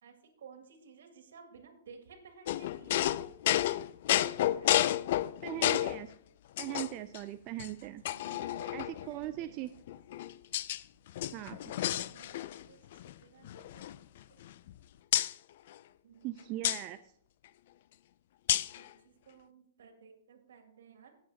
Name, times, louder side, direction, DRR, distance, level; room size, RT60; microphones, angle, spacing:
voice 1, 0.0-3.2 4.4-4.7 7.8-9.7 10.5-10.6 11.3-14.0 14.3-14.4 16.0-16.8 18.8-21.2, right 6 dB, 75° right, 5 dB, 2.2 m, -57 dB
sound 1, 2.5-6.0 6.6-7.2 7.6-7.7 8.0-9.1 9.9-10.8 11.1-12.7 12.9-13.1 13.4-14.7 15.1-15.3 16.6-16.8 18.5-18.8, left 13 dB, 50° left, 0.3 m, -31 dB
voice 2, 5.4-6.1 6.6-8.0 8.7-9.7 11.3-11.6 16.2-17.0, right 15 dB, 30° right, 9 dB, 0.3 m, -39 dB
17.0 x 7.7 x 2.8 m, 0.69 s
hypercardioid pair, 160°, 0 cm